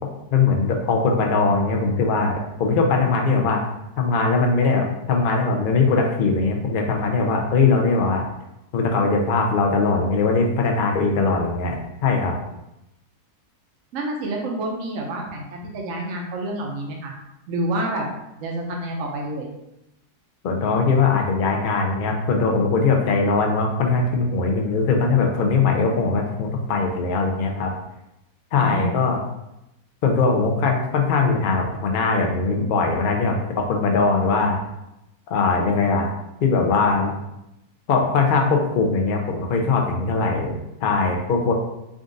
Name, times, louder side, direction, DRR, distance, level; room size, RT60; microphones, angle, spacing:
voice 1, 0.0-3.6 4.0-8.2 8.7-11.8 12.0-12.4 20.4-27.7 28.5-29.2 30.0-34.6 35.3-36.1 36.4-37.1 37.9-41.5, left 4 dB, 65° left, 2 dB, 0.5 m, -21 dB
voice 2, 13.9-17.1 17.5-18.1 18.3-19.5 28.6-28.9, right 1 dB, 60° right, -1 dB, 1.0 m, -28 dB
3.8 x 2.5 x 3.8 m, 0.88 s
omnidirectional pair, 1.7 m